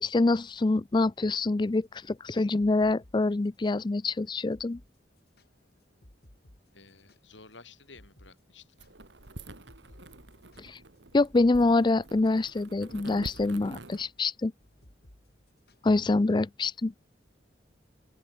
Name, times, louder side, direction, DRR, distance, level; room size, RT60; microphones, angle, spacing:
voice 1, 0.0-4.8 10.6-10.8 11.1-14.5 15.8-16.9, left 2 dB, 25° left, 0.4 m, -26 dB
sound 1, 1.8-3.8 4.1-4.2 4.5-4.9 5.2-7.6 7.9-8.3 8.6-15.9, left 1 dB, 55° left, 2.9 m, -58 dB
voice 2, 6.7-8.8, left 4 dB, 90° left, 6.5 m, -53 dB
sound 2, 8.8-14.0, right 2 dB, 80° right, 2.4 m, -46 dB
open air
head